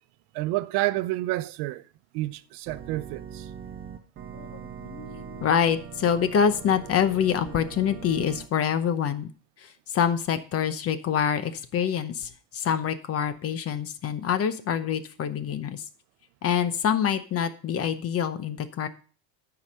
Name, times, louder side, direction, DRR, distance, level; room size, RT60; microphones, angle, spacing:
voice 1, 0.3-1.8 2.1-3.5, right 17 dB, 70° right, 0.7 m, -29 dB
Organ, 2.7-8.5, right 7 dB, 30° right, 1.3 m, -41 dB
voice 2, 4.3-9.3 9.6-15.8 16.4-18.9, left 8 dB, 35° left, 0.8 m, -26 dB
12.0 x 4.9 x 5.4 m
cardioid pair, 150°, 43 cm